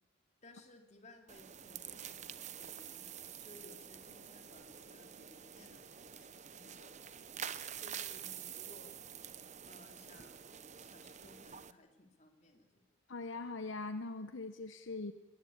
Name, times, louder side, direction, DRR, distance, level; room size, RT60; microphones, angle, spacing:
voice 1, 0.4-7.2 7.8-9.0 9.7-10.5 10.8-12.8, left 2 dB, 35° left, 4 dB, 3.1 m, -60 dB
sound 1, 1.3-11.7, right 9 dB, 35° right, 0.8 m, -48 dB
voice 2, 13.1-15.1, left 3 dB, 65° left, 10 dB, 1.0 m, -41 dB
21.0 x 19.5 x 8.7 m, 1.1 s
head